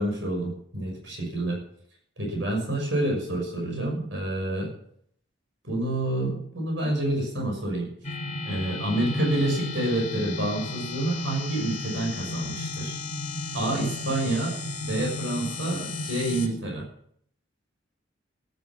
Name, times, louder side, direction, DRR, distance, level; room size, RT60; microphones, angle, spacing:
voice 1, 0.0-1.6 2.2-4.7 5.6-7.9 8.4-13.0 13.5-16.9, right 1 dB, 70° right, 1 dB, 6.2 m, -28 dB
sound 1, 8.0-16.5, left 2 dB, 35° left, 3.5 m, -33 dB
14.0 x 12.5 x 7.5 m, 0.66 s
head